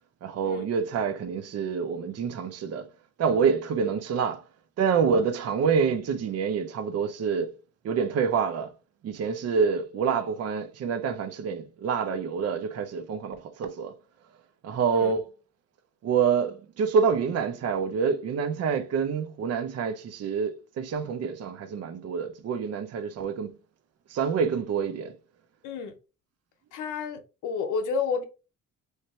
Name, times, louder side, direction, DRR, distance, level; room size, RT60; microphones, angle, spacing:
voice 1, 0.2-2.9 3.2-4.4 4.8-7.5 7.8-8.7 9.0-13.9 14.6-15.3 16.0-23.5 24.1-25.1, right 6 dB, 55° right, 0.6 m, -27 dB
voice 2, 25.6-25.9 26.7-28.2, left 5 dB, 85° left, 0.7 m, -30 dB
3.3 x 2.6 x 4.1 m
cardioid pair, 90°, 30 cm